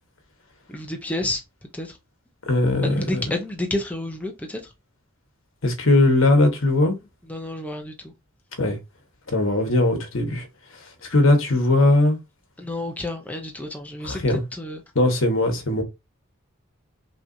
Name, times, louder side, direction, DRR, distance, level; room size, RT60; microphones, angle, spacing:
voice 1, 0.7-1.4 1.7-2.0 2.8-4.6 7.3-7.9 12.6-14.8, left 1 dB, 5° left, 0.7 m, -30 dB
voice 2, 2.5-3.3 5.6-7.0 8.6-8.8 9.3-10.5 11.1-12.2 14.0-14.4 14.9-15.8, left 2 dB, 70° left, 1.5 m, -19 dB
6.0 x 3.0 x 2.7 m
head